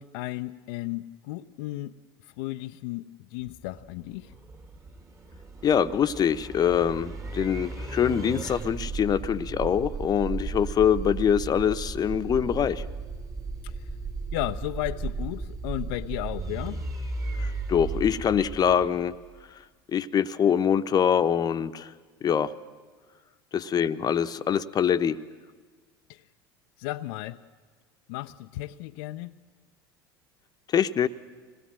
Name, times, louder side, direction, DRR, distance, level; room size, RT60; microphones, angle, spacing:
voice 1, 0.0-4.3 13.6-13.9 14.3-16.8 26.1-26.2 26.8-27.4 28.1-29.3, left 17 dB, 65° left, 7 dB, 0.6 m, -34 dB
sound 1, 3.5-19.4, right 3 dB, 25° right, 2.3 m, -35 dB
voice 2, 5.6-12.8 17.4-19.1 19.9-21.9 22.2-22.5 23.5-25.2 30.7-31.1, left 8 dB, 35° left, 11 dB, 1.0 m, -24 dB
25.0 x 19.5 x 7.7 m, 1.5 s
hypercardioid pair, 80°, 12 cm